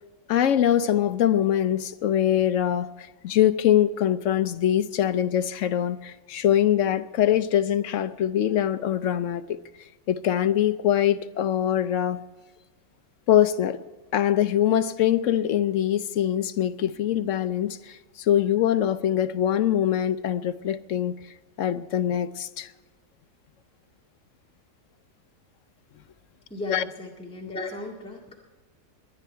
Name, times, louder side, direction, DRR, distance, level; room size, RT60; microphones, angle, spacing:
voice 1, 0.3-9.6 10.1-12.2 13.3-13.8 14.1-21.1 21.6-22.7 26.7-26.8, left 10 dB, 60° left, 0.9 m, -23 dB
voice 2, 26.5-28.4, left 2 dB, 5° left, 1.9 m, -36 dB
22.5 x 10.0 x 4.5 m
omnidirectional pair, 1.7 m